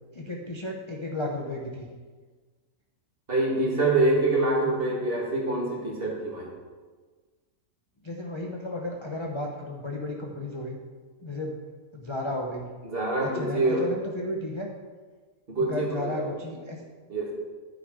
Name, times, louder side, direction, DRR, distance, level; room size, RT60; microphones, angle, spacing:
voice 1, 0.1-1.9 8.0-10.8 11.2-11.6 11.9-12.7 13.2-14.7 15.6-16.8, left 1 dB, 25° left, 0 dB, 0.6 m, -33 dB
voice 2, 3.3-6.5 12.8-13.8 15.5-16.3 17.1-17.3, right 2 dB, 40° right, -2 dB, 2.1 m, -25 dB
10.5 x 8.9 x 3.7 m, 1.4 s
omnidirectional pair, 1.6 m